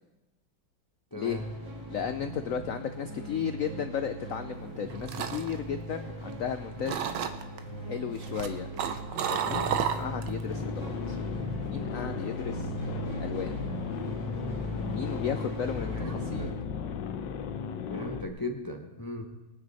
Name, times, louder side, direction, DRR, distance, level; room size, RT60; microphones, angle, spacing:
voice 1, 1.1-1.4 15.8-16.5 17.9-19.3, left 1 dB, 30° left, 4 dB, 0.4 m, -38 dB
sound 1, 1.3-16.5, right 1 dB, 15° right, 2.3 m, -38 dB
voice 2, 1.9-7.0 7.9-8.7 9.3-11.2 11.7-12.7 13.2-13.6 14.9-16.5, left 8 dB, 85° left, 9 dB, 0.7 m, -34 dB
sound 2, 4.6-6.5 6.8-7.6 8.1-10.4 10.7-11.1, right 8 dB, 70° right, 1.5 m, -32 dB
sound 3, 10.5-18.3, left 7 dB, 70° left, 1.4 m, -36 dB
21.5 x 9.5 x 4.1 m, 1.1 s
omnidirectional pair, 2.1 m